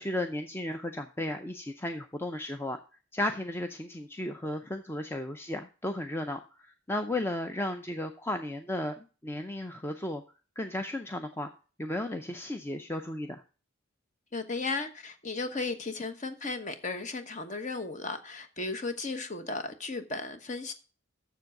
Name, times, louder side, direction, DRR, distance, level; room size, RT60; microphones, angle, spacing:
voice 1, 0.0-2.8 3.1-10.2 10.6-11.5 11.8-13.4, left 1 dB, 10° left, 0.5 m, -34 dB
voice 2, 14.3-20.7, left 3 dB, 35° left, 1.1 m, -35 dB
7.3 x 7.0 x 6.4 m
head